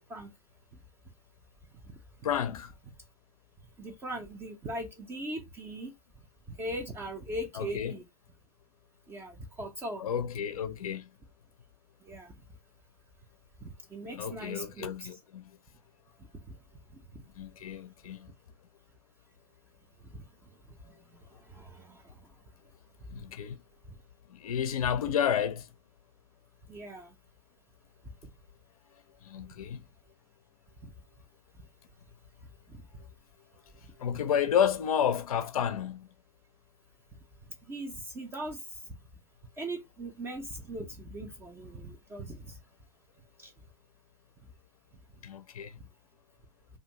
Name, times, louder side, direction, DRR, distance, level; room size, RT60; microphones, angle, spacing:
voice 1, 2.2-2.7 7.5-7.9 10.0-11.1 14.1-15.5 17.4-18.3 23.1-23.6 24.3-25.7 29.2-29.8 34.0-36.1 45.2-45.7, left 8 dB, 65° left, 0.4 m, -31 dB
voice 2, 3.8-5.9 6.5-8.0 9.1-10.0 12.0-12.3 13.6-15.2 16.4-16.5 17.1-17.2 20.0-20.2 20.8-22.2 26.7-27.1 30.8-30.9 32.7-32.8 37.6-38.8 39.6-42.6 43.4-43.5, right 1 dB, 10° right, 0.4 m, -40 dB
2.5 x 2.2 x 2.8 m
figure-of-eight pair, 105°, 19 cm